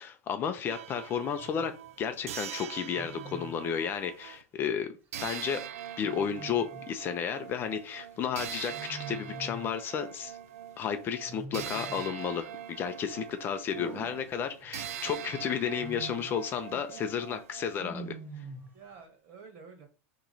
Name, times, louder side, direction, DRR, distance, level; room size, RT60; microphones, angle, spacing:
voice 1, 0.0-1.7 2.0-4.9 5.2-5.6 6.0-10.4 10.8-18.1, left 7 dB, 30° left, 0.5 m, -33 dB
sound 1, 0.7-4.4 5.1-17.8, right 10 dB, 90° right, 0.4 m, -43 dB
Wild animals, 1.4-1.7 3.0-3.7 6.0-6.9 8.7-9.8 11.3-12.2 13.7-14.9 15.6-16.5 17.8-18.8, right 3 dB, 25° right, 0.8 m, -44 dB
voice 2, 16.7-17.2 18.7-19.9, right 5 dB, 45° right, 1.5 m, -50 dB
4.2 x 3.0 x 3.9 m
supercardioid pair, 140°, 8 cm